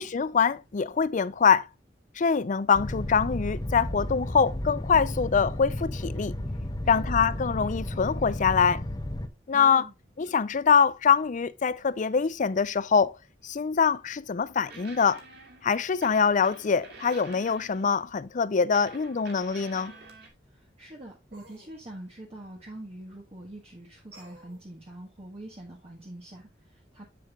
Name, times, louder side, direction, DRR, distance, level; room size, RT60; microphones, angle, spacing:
voice 1, 0.0-1.7 2.2-6.3 6.9-8.8 9.5-9.9 10.2-13.1 13.4-15.2 15.6-19.9, left 6 dB, 45° left, 0.5 m, -24 dB
sound 1, 2.7-9.3, left 1 dB, 20° left, 0.8 m, -33 dB
voice 2, 6.8-7.1 9.5-9.9 20.4-27.0, right 1 dB, 35° right, 1.4 m, -44 dB
sound 2, 14.5-18.0 18.7-20.3, right 3 dB, 65° right, 2.3 m, -48 dB
sound 3, 19.0-19.1 21.3-21.7 24.1-24.6, right 1 dB, 85° right, 3.6 m, -53 dB
7.8 x 7.5 x 2.4 m
head